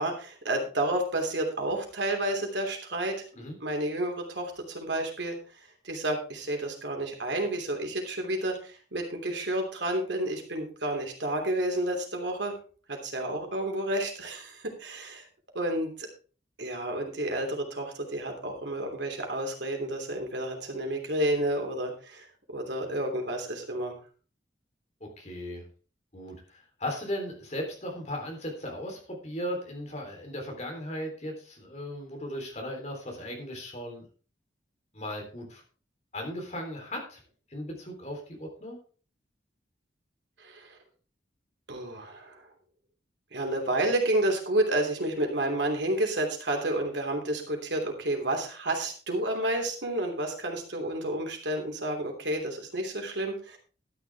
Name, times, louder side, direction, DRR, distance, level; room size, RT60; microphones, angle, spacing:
voice 1, 0.0-3.2 3.6-5.4 5.8-12.5 12.9-15.2 15.5-16.1 16.6-22.3 22.5-23.9 40.4-40.8 41.7-42.5 43.3-53.6, right 1 dB, 75° right, 2 dB, 3.0 m, -30 dB
voice 2, 25.0-25.7 26.1-34.0 34.9-35.6 36.1-37.2 37.5-38.8, equal, 35° left, 2 dB, 3.5 m, -37 dB
12.5 x 9.9 x 3.5 m, 0.38 s
head